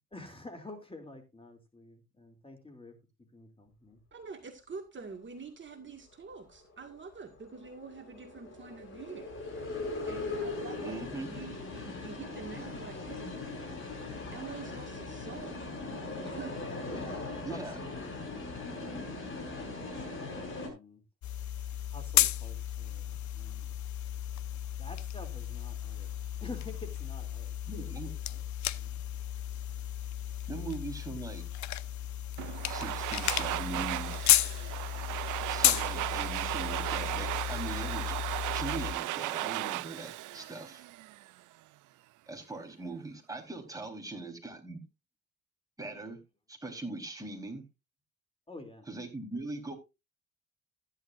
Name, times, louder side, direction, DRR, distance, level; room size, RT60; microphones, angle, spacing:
voice 1, 0.1-2.9 3.3-4.0 16.9-18.8 19.3-21.0 21.9-23.8 24.7-26.1 26.4-27.5 28.0-28.4 28.7-29.0 48.5-48.9, left 2 dB, 20° left, 2.9 m, -49 dB
voice 2, 4.1-9.3 10.1-13.3 14.3-15.6 16.2-16.6, right 5 dB, 40° right, 1.9 m, -46 dB
sound 1, 6.6-20.7, left 3 dB, 40° left, 6.3 m, -40 dB
voice 3, 10.8-11.3 17.4-17.9 27.7-28.1 30.5-31.4 32.7-34.4 35.5-38.2 38.5-40.9 42.3-44.8 45.8-46.2 46.5-47.6 48.8-49.7, right 2 dB, 10° right, 3.9 m, -41 dB
sound 2, 21.2-38.9, left 12 dB, 70° left, 0.7 m, -33 dB
Domestic sounds home sounds, 32.4-41.3, right 17 dB, 80° right, 0.5 m, -36 dB
14.0 x 10.5 x 2.5 m
cardioid pair, 90°, 30 cm